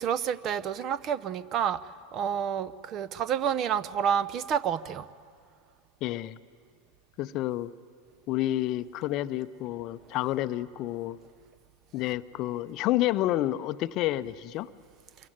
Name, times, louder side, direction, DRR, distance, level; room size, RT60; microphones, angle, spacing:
voice 1, 0.0-1.8 2.1-5.1, right 8 dB, 40° right, 17 dB, 0.7 m, -29 dB
voice 2, 6.0-6.4 7.2-7.7 8.3-11.2 11.9-14.7, left 15 dB, 45° left, 15 dB, 0.6 m, -29 dB
26.0 x 22.5 x 9.4 m, 2.2 s
figure-of-eight pair, 85°, 0 cm